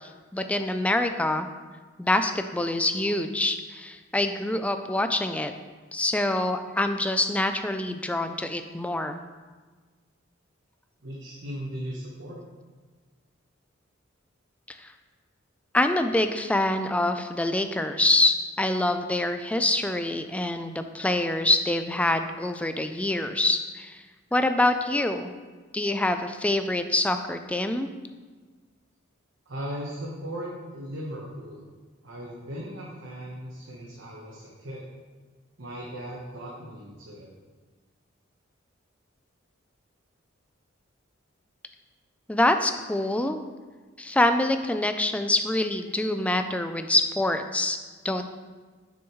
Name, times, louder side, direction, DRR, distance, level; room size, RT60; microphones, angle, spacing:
voice 1, 0.0-1.5 2.0-5.5 5.9-9.2 14.7-14.8 15.7-24.0 24.3-25.3 25.7-27.9 42.3-43.4 44.0-47.8 48.0-48.2, left 1 dB, 5° left, 8 dB, 0.3 m, -25 dB
voice 2, 11.0-12.4 29.5-31.7 32.0-34.8 35.6-37.3, equal, 65° right, -4 dB, 1.1 m, -37 dB
7.1 x 6.2 x 3.1 m, 1.4 s
head